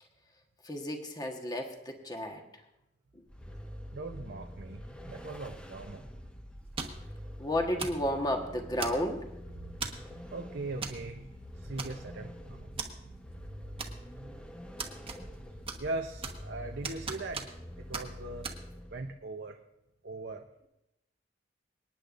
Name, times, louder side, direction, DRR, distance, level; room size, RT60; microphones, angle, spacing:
voice 1, 0.7-2.4 7.4-9.2, left 1 dB, 20° left, 3 dB, 1.4 m, -32 dB
Vehicle, 3.3-19.2, equal, 5° left, 0.8 m, -46 dB
voice 2, 3.9-6.0 9.9-10.0 10.2-12.7 15.8-17.5 17.9-18.5 18.9-19.6 20.0-20.4, right 2 dB, 65° right, 3 dB, 0.8 m, -40 dB
sound 1, 6.8-7.1 7.8-8.1 8.8-9.2 9.8-10.1 10.8-11.0 11.3-11.4 11.8-12.3 12.8-12.9 13.8-14.3 14.8-15.4 15.7-16.5 16.8-17.7 17.9-18.1 18.4-18.6, right 4 dB, 30° right, 1.3 m, -38 dB
25.5 x 9.9 x 2.6 m, 0.91 s
head